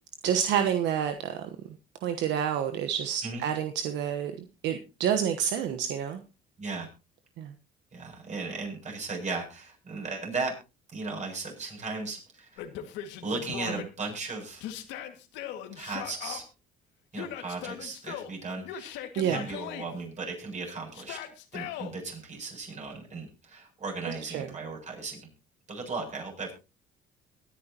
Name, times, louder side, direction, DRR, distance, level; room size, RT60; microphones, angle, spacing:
voice 1, 0.2-1.5 2.0-4.3 4.6-6.2 7.4-7.5 19.2-19.4 24.0-24.5, right 9 dB, 70° right, 7 dB, 1.2 m, -28 dB
voice 2, 6.6-6.9 7.9-10.5 10.9-12.7 13.2-14.6 15.8-16.4 17.1-18.9 19.2-21.2 21.5-25.2 25.7-26.5, right 3 dB, 40° right, 2 dB, 7.7 m, -36 dB
Yell, 12.6-13.9 14.6-16.4 17.1-18.3 18.6-19.9 20.9-21.9, left 10 dB, 80° left, 2.0 m, -39 dB
22.5 x 10.0 x 2.9 m, 0.29 s
supercardioid pair, 90°, 19 cm